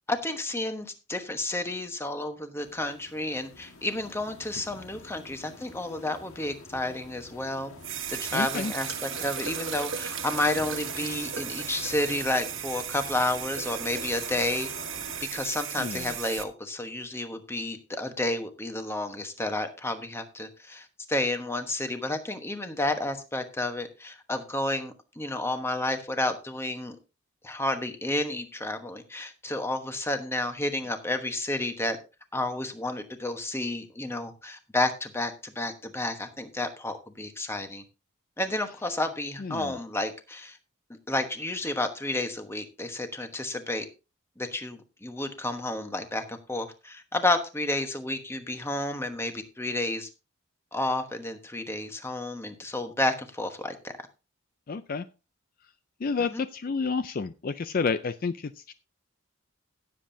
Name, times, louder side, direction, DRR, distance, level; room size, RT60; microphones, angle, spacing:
voice 1, 0.1-7.7 8.1-14.7 15.3-26.9 27.4-32.0 32.3-37.8 38.4-40.6 41.1-43.8 44.4-50.1 50.7-53.9 56.2-56.4, left 2 dB, 10° left, 7 dB, 1.1 m, -31 dB
sound 1, 2.6-15.3, left 3 dB, 85° left, 1.6 m, -46 dB
sound 2, 7.8-16.4, right 9 dB, 65° right, 1.2 m, -36 dB
voice 2, 8.3-8.7 15.8-16.2 39.4-39.8 54.7-55.1 56.0-58.7, left 4 dB, 40° left, 12 dB, 0.4 m, -30 dB
17.0 x 7.5 x 2.7 m, 0.30 s
head